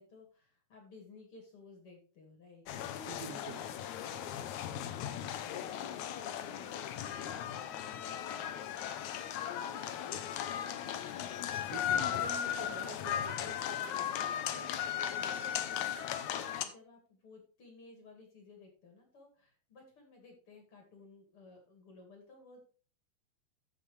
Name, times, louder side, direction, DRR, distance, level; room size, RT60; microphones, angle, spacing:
voice 1, 0.0-2.6 4.1-8.6 9.7-10.8 12.1-12.5 15.1-22.6, left 3 dB, 40° left, 2 dB, 2.4 m, -56 dB
sound 1, 2.7-16.7, left 10 dB, 85° left, 1.7 m, -37 dB
voice 2, 3.1-3.7 11.7-14.7, right 8 dB, 75° right, 8 dB, 2.3 m, -48 dB
14.5 x 5.6 x 3.3 m, 0.39 s
omnidirectional pair, 4.4 m